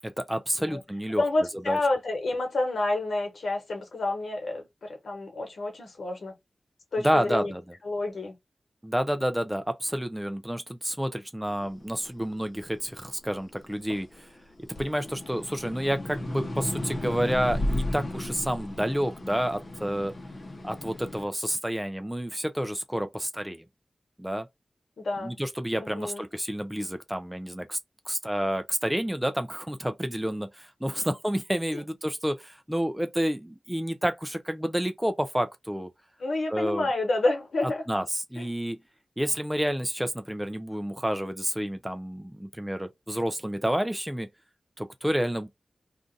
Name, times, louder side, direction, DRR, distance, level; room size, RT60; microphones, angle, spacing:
voice 1, 0.0-1.2 1.7-1.8 7.0-7.6 8.8-14.3 14.8-20.1 20.6-23.6 24.2-24.5 25.2-27.8 28.1-35.9 36.5-36.9 37.9-38.8 39.2-44.3 44.8-45.5, equal, 5° right, 0.4 m, -29 dB
voice 2, 1.2-6.3 6.9-7.5 7.8-8.4 25.0-25.4 25.8-26.2 31.0-31.1 31.7-31.8 36.2-37.8 38.4-38.5, left 2 dB, 85° left, 1.1 m, -29 dB
sound 1, 11.6-14.2 14.6-21.3, left 1 dB, 50° left, 0.8 m, -34 dB
2.5 x 2.4 x 3.8 m
wide cardioid pair, 100°, 0 cm